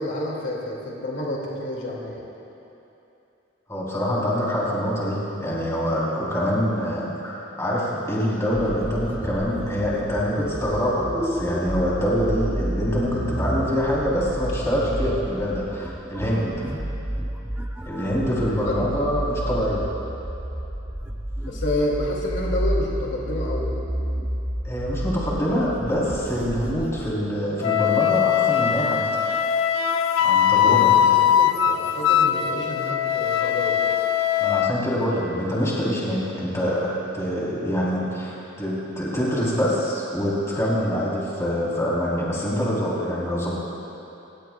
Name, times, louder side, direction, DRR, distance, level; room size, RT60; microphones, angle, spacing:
voice 1, 0.0-2.2 17.9-18.0 18.6-18.9 21.5-23.7 31.0-33.8, left 1 dB, 60° left, -3 dB, 2.3 m, -29 dB
voice 2, 3.7-16.7 17.8-19.9 24.6-29.2 30.2-31.1 34.4-43.6, equal, 15° left, -6 dB, 3.5 m, -25 dB
sound 1, 8.5-27.1, equal, 10° right, 0.8 m, -30 dB
Wind instrument woodwind instrument, 27.6-34.7, left 10 dB, 90° left, 0.6 m, -20 dB
28.0 x 17.5 x 2.3 m, 2.9 s
head